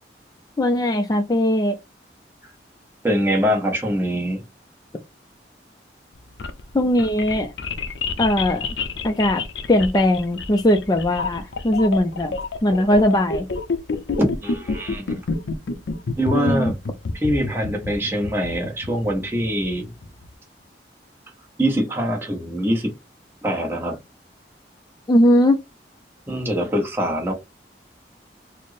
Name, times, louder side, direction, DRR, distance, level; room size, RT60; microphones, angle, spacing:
voice 1, 0.6-1.8 6.7-7.5 8.2-8.7 9.0-9.4 9.7-13.5 16.3-16.7 25.1-25.6, left 1 dB, 20° left, 0.3 m, -19 dB
voice 2, 3.0-4.4 14.2-15.2 16.2-16.8 17.1-19.9 21.6-22.9 23.4-24.0 26.3-27.3, equal, 15° right, 0.8 m, -23 dB
sound 1, 6.2-20.3, left 4 dB, 90° left, 0.5 m, -29 dB
4.1 x 2.0 x 3.2 m
head